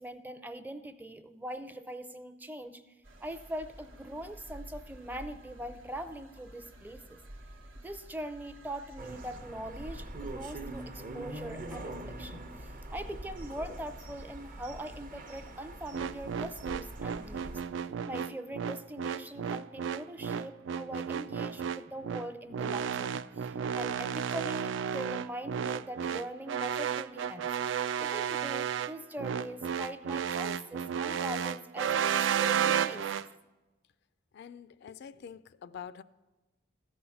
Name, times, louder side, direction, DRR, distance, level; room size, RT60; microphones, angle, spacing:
voice 1, 0.0-2.8 3.2-7.2 7.8-17.5 17.8-27.5 28.0-33.2, right 1 dB, 10° right, 0.5 m, -42 dB
quarry forest on sabe, 3.0-9.4, right 1 dB, 90° right, 1.1 m, -51 dB
sound 1, 9.0-17.6, right 1 dB, 45° right, 0.8 m, -43 dB
sound 2, 15.9-33.3, right 8 dB, 70° right, 0.3 m, -32 dB
voice 2, 34.3-36.0, left 7 dB, 60° left, 0.3 m, -46 dB
14.0 x 5.5 x 7.0 m
head